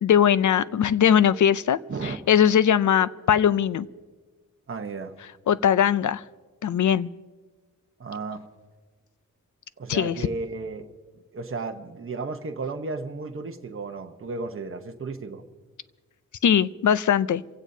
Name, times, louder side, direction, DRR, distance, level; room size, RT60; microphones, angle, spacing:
voice 1, 0.0-3.9 5.5-6.2 6.6-7.1 9.9-10.2 16.4-17.4, left 9 dB, 65° left, 0.5 m, -20 dB
voice 2, 4.7-5.1 8.0-8.4 9.8-10.9 11.3-15.4, right 3 dB, 40° right, 1.0 m, -33 dB
27.5 x 16.5 x 2.7 m
wide cardioid pair, 170°, 33 cm